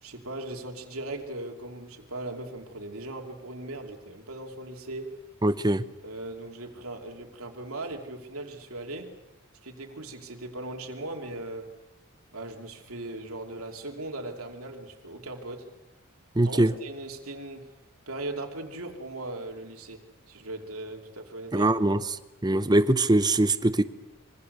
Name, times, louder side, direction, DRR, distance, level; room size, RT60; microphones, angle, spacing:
voice 1, 0.0-5.2 6.0-9.1 9.6-11.7 12.3-15.7 16.5-17.7 18.1-20.0 20.3-21.9, right 2 dB, 90° right, 2.8 m, -38 dB
voice 2, 5.4-5.8 16.4-16.7 21.5-22.0 22.4-23.8, right 1 dB, 20° right, 0.8 m, -22 dB
26.0 x 23.5 x 6.7 m
head